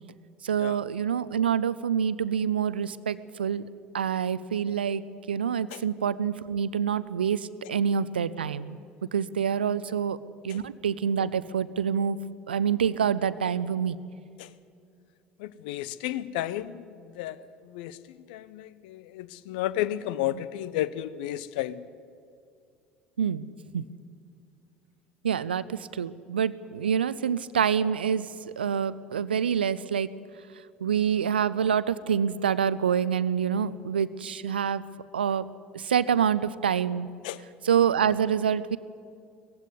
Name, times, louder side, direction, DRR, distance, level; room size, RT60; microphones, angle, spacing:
voice 1, 0.4-3.6 3.9-5.0 5.3-8.8 9.1-10.2 10.4-12.2 12.5-14.0 23.2-23.5 23.7-23.8 25.2-28.3 28.6-30.1 30.8-34.8 35.1-35.4 35.7-37.1 37.7-38.8, right 8 dB, 80° right, 17 dB, 0.6 m, -26 dB
voice 2, 15.4-21.8 37.2-37.4, left 13 dB, 65° left, 17 dB, 0.7 m, -33 dB
18.5 x 15.5 x 9.7 m, 2.4 s
figure-of-eight pair, 60°, 5 cm